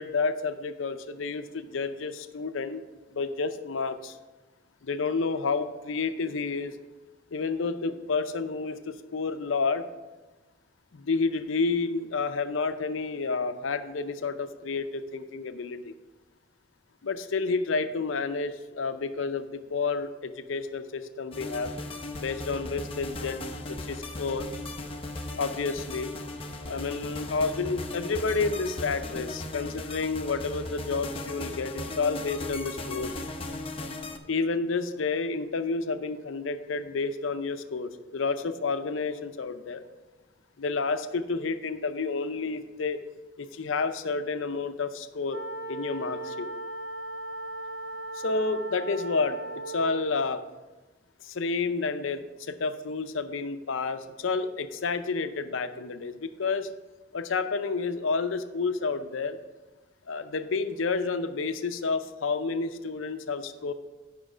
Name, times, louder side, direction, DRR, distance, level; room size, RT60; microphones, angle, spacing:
voice 1, 0.0-2.8 3.1-4.2 4.8-6.8 7.3-9.8 10.9-15.9 17.0-21.7 22.2-23.4 23.7-24.5 25.4-26.1 26.7-33.1 34.3-39.8 40.6-43.0 43.4-45.4 45.7-46.5 48.1-50.4 51.2-56.7 57.1-59.4 60.1-63.7, left 4 dB, 80° left, 9 dB, 0.6 m, -30 dB
sound 1, 21.3-34.2, left 2 dB, 30° left, 0.7 m, -37 dB
sound 2, 45.3-50.2, right 2 dB, 65° right, 0.6 m, -37 dB
8.7 x 5.7 x 5.1 m, 1.2 s
head